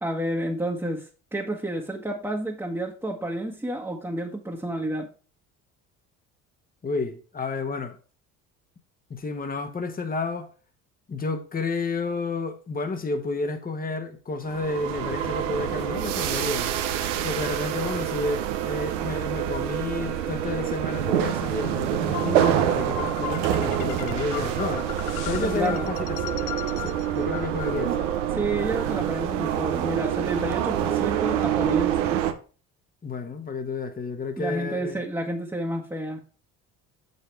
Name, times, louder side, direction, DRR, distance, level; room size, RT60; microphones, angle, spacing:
voice 1, 0.0-5.1 25.4-25.9 28.4-32.2 34.4-36.2, right 1 dB, 5° right, 1.3 m, -30 dB
voice 2, 6.8-7.9 9.1-10.5 11.1-16.7 17.2-24.9 25.2-26.3 26.8-28.1 33.0-35.0, left 3 dB, 25° left, 1.2 m, -31 dB
sound 1, 14.5-32.3, right 11 dB, 85° right, 0.8 m, -26 dB
Bird, 16.9-31.4, left 2 dB, 75° left, 2.9 m, -48 dB
sound 2, 22.1-28.2, left 12 dB, 60° left, 0.6 m, -37 dB
6.4 x 5.5 x 4.5 m
hypercardioid pair, 65°, 35 cm